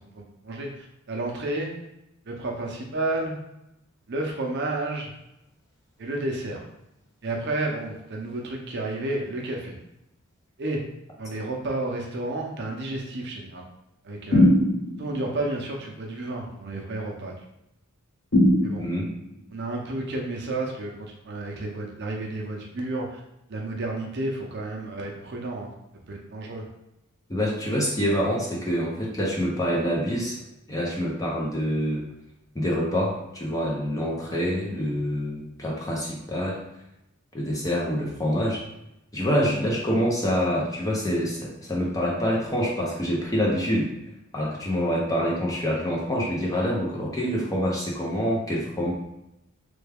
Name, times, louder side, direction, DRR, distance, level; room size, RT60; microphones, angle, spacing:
voice 1, 0.1-1.7 2.3-3.3 4.1-5.1 6.0-6.6 7.2-9.8 10.6-10.8 11.2-13.7 14.0-14.5 15.0-17.3 18.6-18.8 19.5-23.2 23.5-25.7 26.1-26.6, right 2 dB, 50° right, 0 dB, 0.6 m, -31 dB
sound 1, 14.3-15.2 18.3-19.2, left 1 dB, 60° left, 1.2 m, -20 dB
voice 2, 27.3-30.4 30.7-32.1 32.5-36.6 37.3-38.6 39.1-43.9 44.3-48.9, equal, 15° left, -3 dB, 0.6 m, -26 dB
3.3 x 2.3 x 3.4 m, 0.86 s
head